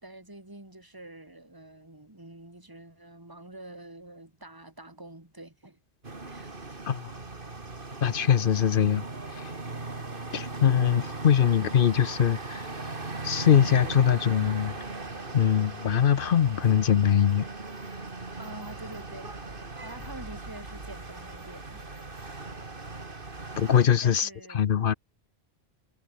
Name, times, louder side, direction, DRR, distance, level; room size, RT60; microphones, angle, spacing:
voice 1, 0.0-5.8 6.2-6.5 18.4-21.8 24.0-24.7, right 1 dB, 20° right, 3.2 m, -46 dB
sound 1, 6.0-23.9, right 3 dB, 50° right, 2.8 m, -38 dB
voice 2, 8.0-9.0 10.3-12.6 13.2-14.7 15.3-17.4 23.6-24.3 24.5-24.9, left 8 dB, 55° left, 0.8 m, -22 dB
omnidirectional pair, 1.1 m